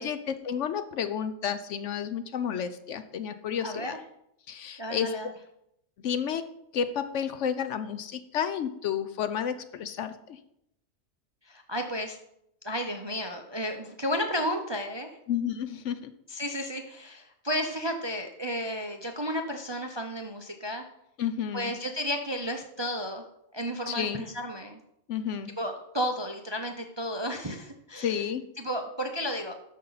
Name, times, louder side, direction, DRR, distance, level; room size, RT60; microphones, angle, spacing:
voice 1, 0.0-4.0 4.5-5.3 6.0-6.4 6.7-10.4 15.3-16.1 21.2-21.7 23.9-24.2 25.1-25.5 28.0-28.4, left 8 dB, 65° left, 11 dB, 0.9 m, -31 dB
voice 2, 3.6-4.0 4.8-5.3 11.4-12.2 12.6-15.2 16.3-20.8 21.5-23.2 23.5-24.8 25.6-28.2 28.6-29.5, equal, 30° right, 4 dB, 0.5 m, -33 dB
12.5 x 5.5 x 4.0 m, 0.77 s
omnidirectional pair, 1.4 m